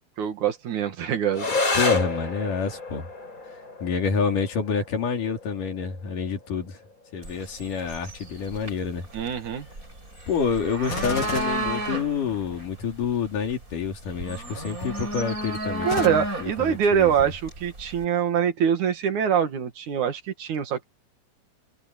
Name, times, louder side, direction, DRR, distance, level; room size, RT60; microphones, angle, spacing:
voice 1, 0.2-1.5 9.1-9.7 15.8-20.8, right 8 dB, 65° right, 3.2 m, -24 dB
sound 1, 1.3-10.3, left 3 dB, 25° left, 5.6 m, -32 dB
voice 2, 1.8-3.1 3.8-6.8 7.1-9.1 10.3-17.3, left 5 dB, 75° left, 4.7 m, -28 dB
sound 2, 7.2-18.0, right 1 dB, 25° right, 7.0 m, -34 dB
Gunshot gunfire, 10.8-12.6 15.8-16.1, left 7 dB, 45° left, 1.4 m, -34 dB
omnidirectional pair, 3.8 m